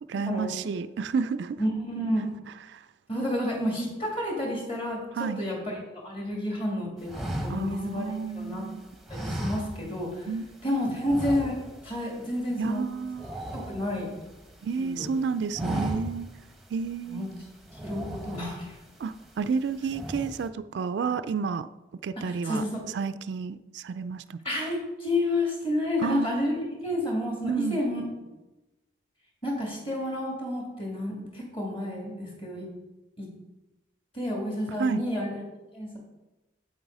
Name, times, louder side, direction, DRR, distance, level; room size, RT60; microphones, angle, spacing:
voice 1, 0.1-1.6 2.7-2.8 5.1-5.4 7.5-8.9 10.3-10.5 12.6-13.3 14.6-16.3 16.7-17.3 19.0-21.7 22.0-24.4 26.0-26.3 27.4-27.8 34.8-35.0, right 5 dB, 60° right, 13 dB, 0.3 m, -31 dB
voice 2, 1.6-2.3 3.1-8.6 9.1-10.3 10.6-11.6 11.8-12.8 13.5-14.2 14.8-15.1 17.0-17.2 17.8-18.7 22.2-22.8 24.4-26.5 26.8-28.0 29.4-32.7 33.2-33.3 34.1-35.4 35.7-36.0, left 1 dB, 30° left, -1 dB, 2.6 m, -30 dB
sound 1, 7.1-8.6 9.1-10.2 10.4-10.6 11.0-11.9 12.2-12.4 12.7-14.4 14.9-15.1 15.4-16.4 16.8-16.9 17.7-18.8 19.3-19.6 19.9-20.5, right 1 dB, ahead, 0.9 m, -35 dB
8.3 x 8.0 x 4.8 m, 1.0 s
head